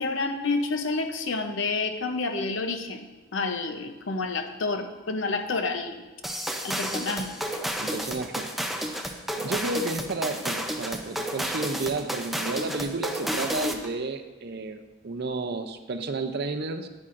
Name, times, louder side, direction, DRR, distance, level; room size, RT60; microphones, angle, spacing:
voice 1, 0.0-6.0 6.6-7.6, left 3 dB, 70° left, 7 dB, 0.7 m, -29 dB
sound 1, 6.2-13.9, equal, ahead, 0.5 m, -31 dB
voice 2, 7.8-8.5 9.4-16.9, right 3 dB, 55° right, 8 dB, 0.6 m, -31 dB
9.7 x 8.7 x 2.5 m, 1.2 s
head